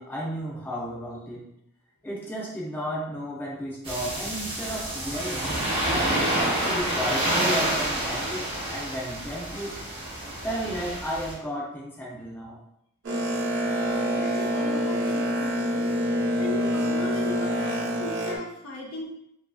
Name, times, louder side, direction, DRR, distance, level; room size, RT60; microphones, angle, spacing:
voice 1, 0.0-1.5 2.0-5.6 5.9-6.1 6.5-9.8 10.4-12.6, equal, 10° left, -5 dB, 0.5 m, -33 dB
Thailand ocean waves crashing on beach cu frothy delicious, 3.8-11.3, right 1 dB, 25° right, 0.7 m, -28 dB
Boat Water vehicle, 13.0-18.4, equal, 60° right, 0.8 m, -26 dB
voice 2, 14.1-15.9 16.4-19.1, left 2 dB, 75° left, -2 dB, 0.7 m, -36 dB
2.7 x 2.5 x 2.3 m, 0.76 s
head